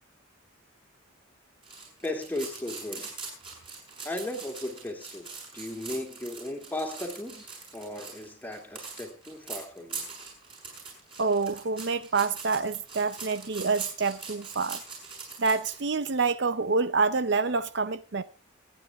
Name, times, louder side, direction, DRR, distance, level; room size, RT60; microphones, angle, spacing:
sound 1, 1.6-15.8, right 4 dB, 25° right, 6.5 m, -42 dB
voice 1, 2.0-3.1 4.0-10.1, left 1 dB, 10° left, 2.4 m, -36 dB
voice 2, 11.2-14.8 15.4-18.2, right 4 dB, 55° right, 0.6 m, -27 dB
26.0 x 9.2 x 3.5 m
head